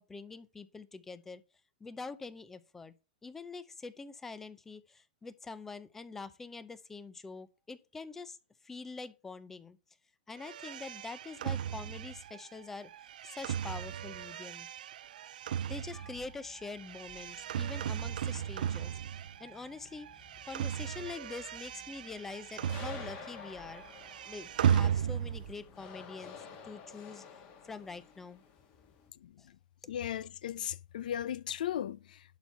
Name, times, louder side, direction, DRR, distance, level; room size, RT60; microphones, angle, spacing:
voice 1, 0.0-1.4 1.8-2.9 3.2-8.4 8.6-9.8 10.3-12.9 13.2-14.7 15.7-20.1 20.5-23.8 24.3-26.4 26.6-27.2 27.6-28.4 29.4-29.5, left 4 dB, 5° left, 0.5 m, -45 dB
sound 1, 10.4-19.7 19.9-23.4 23.7-25.6, right 9 dB, 65° right, 0.4 m, -36 dB
sound 2, 15.6-25.9, left 2 dB, 40° left, 3.7 m, -61 dB
sound 3, 22.6-29.1, left 6 dB, 25° left, 1.4 m, -50 dB
voice 2, 29.9-32.2, left 10 dB, 60° left, 0.6 m, -36 dB
11.5 x 4.4 x 5.6 m
supercardioid pair, 170°, 5 cm